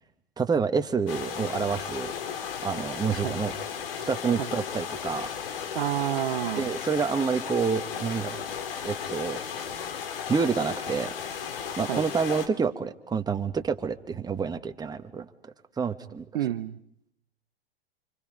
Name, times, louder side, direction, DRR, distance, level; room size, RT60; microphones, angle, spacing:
voice 1, 0.4-2.1 2.6-3.6 4.1-5.3 6.6-8.5 8.8-9.4 10.3-11.1 11.8-15.3 15.8-16.2, right 5 dB, 15° right, 7 dB, 1.3 m, -28 dB
sound 1, 1.1-12.5, left 7 dB, 65° left, 2.2 m, -35 dB
voice 2, 5.7-6.7 11.9-12.0 16.3-16.8, right 12 dB, 65° right, 13 dB, 0.8 m, -29 dB
29.5 x 26.0 x 5.2 m, 0.72 s
figure-of-eight pair, 95°, 30 cm